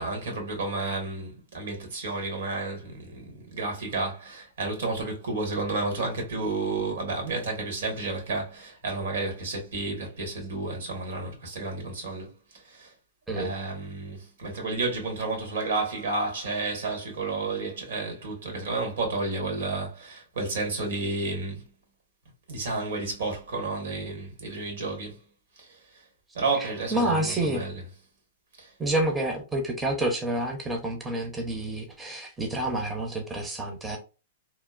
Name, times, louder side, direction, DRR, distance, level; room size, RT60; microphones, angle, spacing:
voice 1, 0.0-12.3 13.3-21.6 22.5-25.2 26.3-27.9, right 3 dB, 75° right, 1.3 m, -31 dB
voice 2, 26.5-27.6 28.8-34.0, right 1 dB, 10° right, 0.5 m, -28 dB
2.8 x 2.0 x 2.3 m
hypercardioid pair, 130°, 0 cm